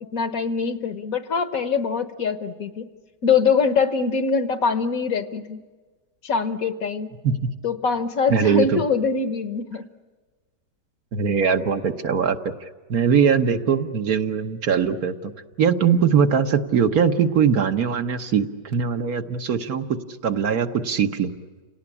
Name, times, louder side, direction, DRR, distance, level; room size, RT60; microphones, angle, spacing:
voice 1, 0.1-2.9 3.2-5.6 6.2-7.1 7.6-9.9, left 5 dB, 55° left, 11 dB, 1.4 m, -23 dB
voice 2, 8.3-8.8 11.1-12.5 12.9-15.3 15.6-19.9 20.2-21.3, right 7 dB, 60° right, 6 dB, 1.6 m, -21 dB
30.0 x 18.0 x 9.9 m, 1.4 s
omnidirectional pair, 1.8 m